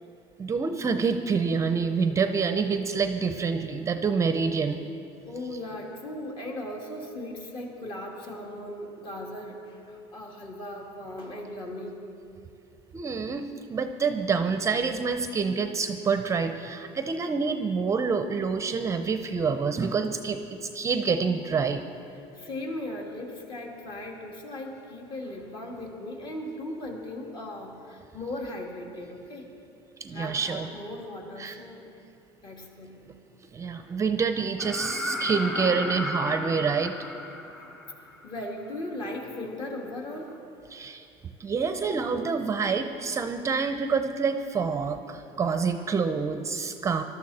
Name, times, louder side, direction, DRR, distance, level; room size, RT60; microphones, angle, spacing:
voice 1, 0.4-4.8 12.9-21.8 30.0-30.7 31.4-31.6 33.5-36.9 40.7-41.0 41.4-47.0, right 5 dB, 25° right, 8 dB, 0.6 m, -27 dB
voice 2, 5.3-12.0 22.1-29.5 30.1-31.8 32.4-33.0 37.6-37.7 38.2-40.3 45.4-45.7, left 1 dB, 40° left, 0 dB, 2.4 m, -38 dB
sound 1, 34.6-38.4 40.3-40.4, left 1 dB, 15° left, 1.6 m, -34 dB
20.0 x 12.5 x 4.2 m, 2.6 s
cardioid pair, 135°, 12 cm